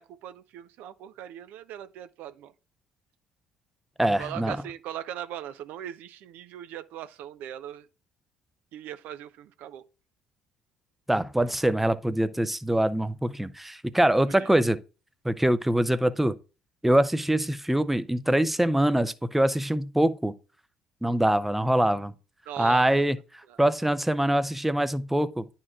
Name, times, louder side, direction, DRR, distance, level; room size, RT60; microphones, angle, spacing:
voice 1, 0.0-2.5 4.0-7.9 8.7-9.8 14.3-14.5 22.5-22.9 23.5-23.6, right 11 dB, 65° right, 0.5 m, -39 dB
voice 2, 4.0-4.6 11.1-14.8 15.2-16.4 16.8-20.3 21.0-22.1 22.6-23.2 23.6-25.5, right 1 dB, 5° right, 0.5 m, -24 dB
11.0 x 4.3 x 2.4 m
hypercardioid pair, 55°, 3 cm